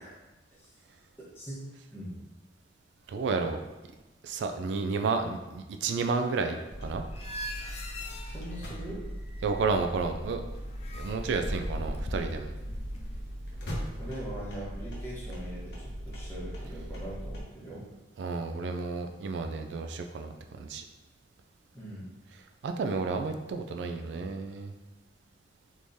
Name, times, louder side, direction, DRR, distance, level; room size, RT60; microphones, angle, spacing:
voice 1, 1.3-2.2 8.3-9.0 14.0-17.9 21.7-22.1, right 1 dB, 15° left, -7 dB, 1.0 m, -41 dB
voice 2, 3.1-3.6 4.2-7.0 9.4-10.4 10.9-12.5 18.2-20.8 22.6-24.7, right 4 dB, 75° right, 6 dB, 0.3 m, -31 dB
sound 1, 6.7-17.4, equal, 65° left, 0.8 m, -39 dB
sound 2, 7.1-9.8 10.0-13.2, equal, 35° left, 0.4 m, -39 dB
3.6 x 3.1 x 2.6 m, 1.1 s
head